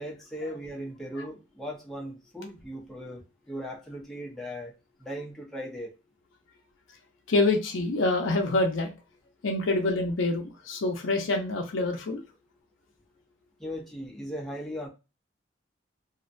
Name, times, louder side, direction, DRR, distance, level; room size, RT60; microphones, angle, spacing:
voice 1, 0.0-4.7 5.0-5.9 13.6-14.9, equal, ahead, -3 dB, 0.6 m, -38 dB
voice 2, 7.3-8.9 9.4-12.2, left 2 dB, 75° left, 1 dB, 0.5 m, -26 dB
2.5 x 2.1 x 2.4 m, 0.28 s
head